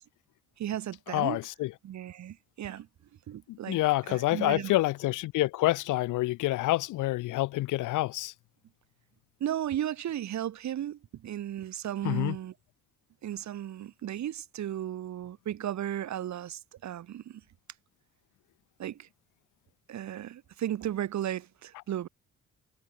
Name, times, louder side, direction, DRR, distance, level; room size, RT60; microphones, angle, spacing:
voice 1, 0.6-1.4 1.8-2.9 3.3-3.8 4.1-4.8 9.4-12.5 13.2-17.4 18.8-19.1 19.9-22.1, right 11 dB, 65° right, 2.2 m, -35 dB
voice 2, 1.1-1.7 3.5-8.3 12.0-12.3, left 18 dB, 85° left, 0.7 m, -27 dB
cardioid pair, 90°, 30 cm